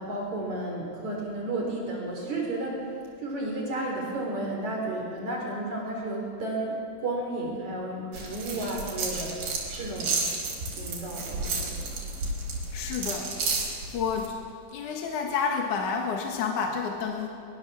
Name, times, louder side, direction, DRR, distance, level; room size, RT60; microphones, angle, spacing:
voice 1, 0.0-2.8 3.2-9.4 9.8-10.2 10.7-12.0, right 2 dB, 55° right, -1 dB, 4.7 m, -32 dB
sound 1, 8.1-14.3, right 3 dB, 85° right, 5.4 m, -32 dB
voice 2, 12.7-14.4 14.7-17.3, left 6 dB, 65° left, 1 dB, 3.0 m, -30 dB
22.5 x 21.0 x 7.1 m, 2.5 s
omnidirectional pair, 4.1 m